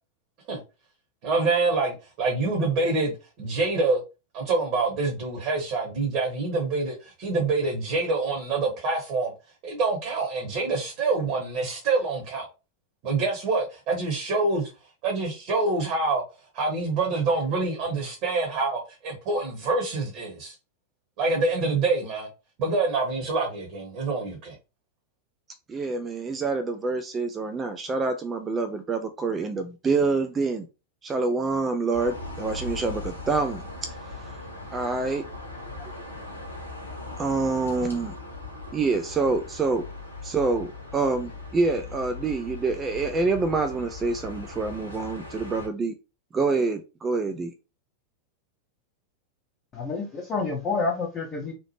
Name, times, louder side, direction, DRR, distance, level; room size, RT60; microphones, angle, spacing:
voice 1, 1.2-4.0 4.3-9.3 9.6-12.5 13.0-14.7 15.0-16.2 16.5-20.5 21.2-22.3 22.6-24.5, right 3 dB, 40° right, 0.9 m, -26 dB
voice 2, 25.7-30.7 31.0-33.6 33.9-34.0 34.2-34.4 34.7-35.2 37.2-38.1 38.7-39.8 40.2-45.9 46.3-47.5, right 3 dB, 20° right, 0.3 m, -26 dB
sound 1, 31.9-45.7, left 3 dB, 80° left, 0.9 m, -39 dB
voice 3, 49.7-51.5, left 4 dB, 25° left, 0.7 m, -28 dB
2.8 x 2.0 x 3.0 m
figure-of-eight pair, 90°, 0 cm